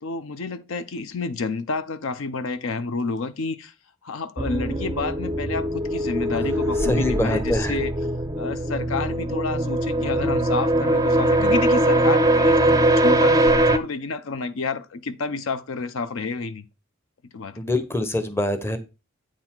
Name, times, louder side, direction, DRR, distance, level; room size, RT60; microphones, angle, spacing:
voice 1, 0.0-3.7 4.0-7.9 8.4-16.6 17.3-17.6, left 4 dB, 65° left, 0.5 m, -29 dB
sound 1, 4.4-13.8, right 1 dB, 15° right, 0.5 m, -21 dB
voice 2, 6.8-7.8 17.6-18.8, left 1 dB, 10° left, 0.8 m, -24 dB
8.6 x 4.1 x 4.4 m
head